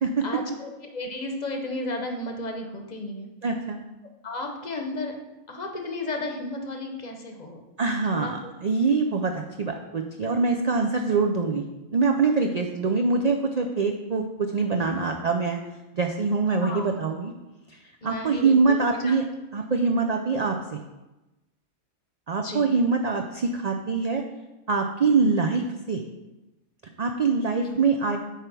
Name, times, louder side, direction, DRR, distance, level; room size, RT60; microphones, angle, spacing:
voice 1, 0.2-3.3 4.2-5.2 5.5-7.6 8.1-8.3 16.6-16.9 18.0-19.1 22.4-22.7 27.6-27.8, left 2 dB, 35° left, 3 dB, 0.9 m, -33 dB
voice 2, 3.4-3.8 7.8-11.6 11.9-15.6 15.9-17.3 17.7-17.8 18.0-19.2 19.5-20.8 22.3-24.2 24.7-26.0 27.0-28.2, right 4 dB, 70° right, 3 dB, 0.3 m, -24 dB
9.2 x 3.4 x 6.0 m, 1.0 s
omnidirectional pair, 1.4 m